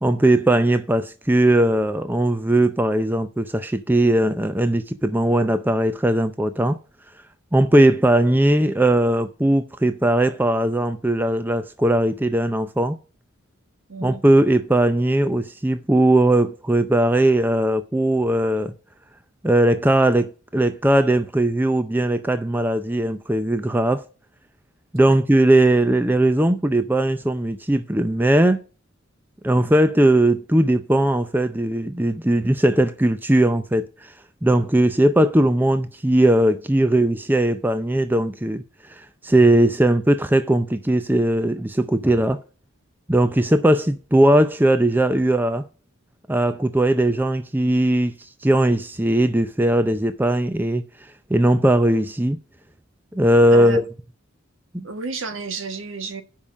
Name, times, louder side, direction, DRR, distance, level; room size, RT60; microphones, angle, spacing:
voice 1, 0.0-6.8 7.5-13.0 14.0-18.7 19.4-24.0 24.9-28.6 29.4-34.1 34.4-38.6 38.9-42.4 43.1-45.6 46.3-50.8 51.3-52.4 53.1-53.8 54.7-54.9, right 1 dB, 10° right, 0.5 m, -19 dB
voice 2, 13.9-14.2 25.0-25.2 53.5-53.8 54.8-56.2, right 4 dB, 70° right, 1.4 m, -31 dB
6.9 x 5.6 x 7.3 m
head